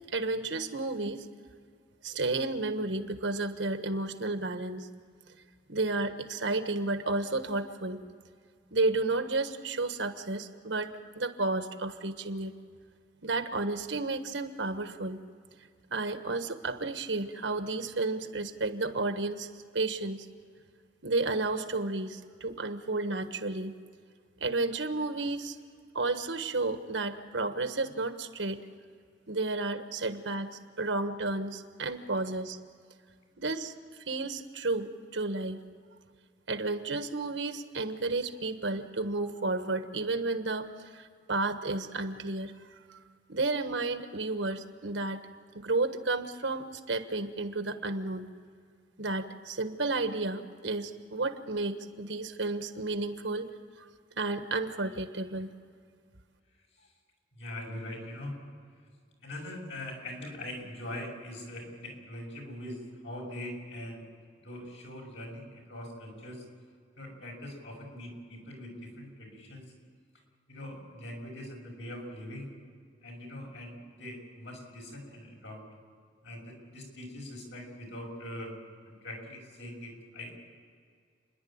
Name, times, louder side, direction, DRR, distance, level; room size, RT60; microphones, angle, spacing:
voice 1, 0.1-1.3 2.0-4.9 5.7-8.0 8.7-10.9 11.1-12.5 13.2-15.2 15.9-19.5 19.7-20.3 21.0-23.8 24.4-25.6 25.9-28.6 29.3-32.6 33.4-33.7 34.1-35.6 36.5-42.5 42.9-43.0 43.3-45.2 45.5-48.3 49.0-53.5 53.8-53.9 54.2-55.5, right 3 dB, 90° right, 8 dB, 1.4 m, -32 dB
voice 2, 57.3-58.4 59.2-64.0 64.4-66.4 67.0-69.7 70.5-72.5 73.0-75.6 76.2-78.5 78.8-80.3, left 1 dB, 85° left, 0 dB, 6.2 m, -42 dB
30.0 x 11.0 x 8.8 m, 2.1 s
head